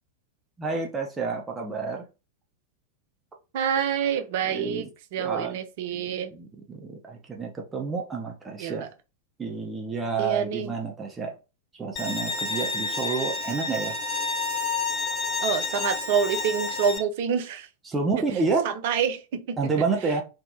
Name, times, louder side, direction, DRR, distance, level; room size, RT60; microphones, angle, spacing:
voice 1, 0.6-2.0 4.4-4.9 5.2-5.6 5.9-8.9 9.4-11.3 11.7-13.9 17.9-18.7 19.6-20.2, right 4 dB, 15° right, 0.7 m, -29 dB
voice 2, 3.5-6.3 8.6-8.9 10.2-10.7 15.4-17.7 18.6-19.6, right 7 dB, 50° right, 0.4 m, -27 dB
Bowed string instrument, 12.0-17.0, left 4 dB, 35° left, 0.6 m, -29 dB
3.4 x 2.0 x 2.8 m
figure-of-eight pair, 90°, 0 cm